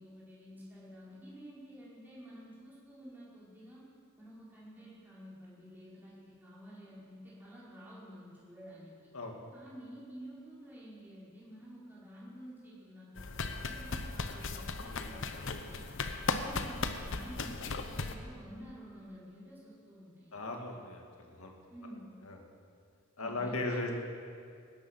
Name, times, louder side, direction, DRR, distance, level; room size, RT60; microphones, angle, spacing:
voice 1, 0.0-3.8 4.2-8.9 9.5-15.8 16.2-20.3 21.7-22.1 23.2-23.9, equal, 10° right, -9 dB, 4.3 m, -51 dB
sound 1, 13.2-18.1, left 4 dB, 65° left, 0.9 m, -37 dB
voice 2, 20.3-21.5 22.2-22.4 23.2-23.9, left 2 dB, 90° left, 2 dB, 2.1 m, -38 dB
20.0 x 10.5 x 5.8 m, 2.3 s
head